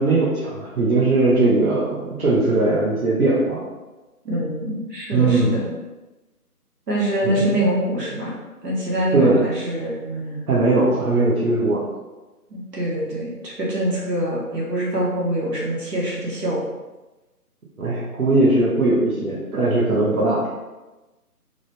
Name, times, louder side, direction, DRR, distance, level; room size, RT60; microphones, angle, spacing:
voice 1, 0.0-3.6 5.1-5.6 7.2-7.3 9.1-9.4 10.5-11.8 17.8-20.4, right 2 dB, 65° right, -6 dB, 1.0 m, -19 dB
voice 2, 4.2-5.7 6.9-8.4 8.6-10.4 12.5-16.6, right 1 dB, 90° right, -4 dB, 1.3 m, -24 dB
3.8 x 2.0 x 3.3 m, 1.1 s
figure-of-eight pair, 155°, 47 cm